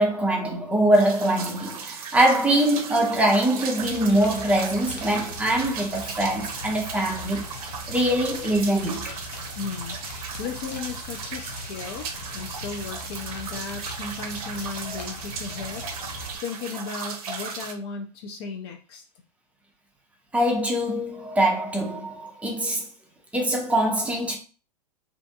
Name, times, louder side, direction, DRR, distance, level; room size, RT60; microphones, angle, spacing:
voice 1, 0.0-7.4 7.9-9.1 14.9-15.0 20.3-22.9 23.3-24.4, right 1 dB, 5° right, 0.6 m, -23 dB
sound 1, 0.9-17.7, right 5 dB, 60° right, 0.6 m, -37 dB
sound 2, 3.8-16.4, left 2 dB, 85° left, 0.7 m, -40 dB
voice 2, 9.6-10.0 10.4-15.8 16.4-19.0, left 4 dB, 40° left, 0.4 m, -35 dB
2.6 x 2.5 x 2.3 m
hypercardioid pair, 110°, 21 cm